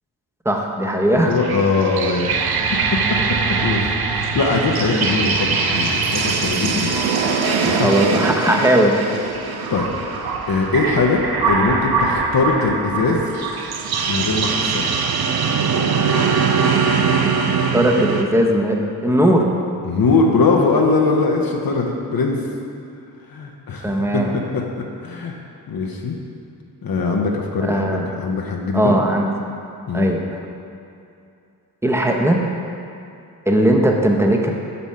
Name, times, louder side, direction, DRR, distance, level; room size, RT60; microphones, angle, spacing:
voice 1, 0.4-1.4 4.9-5.1 7.8-9.0 17.7-19.5 23.8-24.4 27.6-28.1 28.7-29.3 29.9-30.2 31.8-32.4 33.5-34.5, right 1 dB, 5° right, 1 dB, 0.8 m, -18 dB
voice 2, 1.2-2.5 2.9-3.0 3.6-7.0 7.6-7.9 8.2-8.3 9.7-9.9 10.5-11.2 11.5-13.2 14.1-14.9 19.8-22.4 23.3-24.6 25.0-25.4 25.7-26.1 26.8-29.0 29.9-30.1, left 3 dB, 60° left, 0 dB, 0.8 m, -21 dB
sound 1, 1.3-18.2, right 5 dB, 65° right, 0.6 m, -21 dB
6.0 x 5.5 x 4.3 m, 2.6 s
cardioid pair, 45°, 40 cm